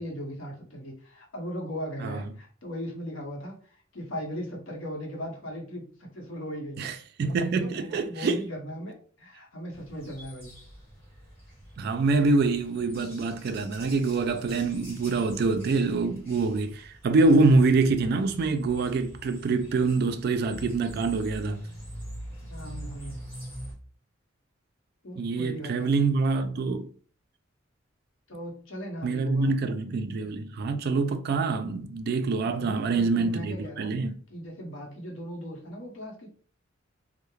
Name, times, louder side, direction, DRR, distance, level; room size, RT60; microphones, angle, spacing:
voice 1, 0.0-6.8 7.6-10.5 22.5-23.2 25.0-26.1 28.3-29.5 32.4-33.9 34.3-36.3, equal, 80° left, 0.8 m, -38 dB
voice 2, 7.2-8.4 11.8-21.6 25.2-26.9 29.0-34.1, right 3 dB, 55° right, 0.3 m, -25 dB
sound 1, 9.7-23.7, equal, 10° left, 1.1 m, -44 dB
2.3 x 2.0 x 3.0 m
head